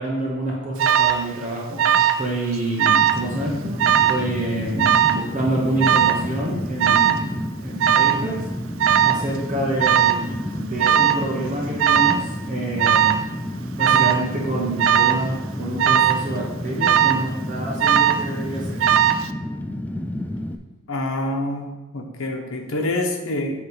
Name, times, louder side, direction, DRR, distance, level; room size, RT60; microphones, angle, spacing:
voice 1, 0.0-8.4 9.0-13.2 13.8-18.8, right 1 dB, 35° right, -4 dB, 1.2 m, -27 dB
Alarm, 0.8-1.2 1.8-2.3 2.5-3.2 3.8-4.2 4.8-5.2 5.8-6.2 6.8-7.2 7.8-8.2 8.8-9.2 9.8-10.2 10.8-11.2 11.8-12.2 12.8-13.2 13.8-14.2 14.8-15.2 15.8-16.2 16.8-17.3 17.8-18.3 18.8-19.3, right 9 dB, 60° right, 0.4 m, -18 dB
Fire, 3.1-20.6, left 1 dB, 5° left, 0.3 m, -31 dB
voice 2, 20.9-23.6, left 1 dB, 70° left, 3 dB, 1.1 m, -26 dB
8.5 x 3.3 x 6.2 m, 1.1 s
head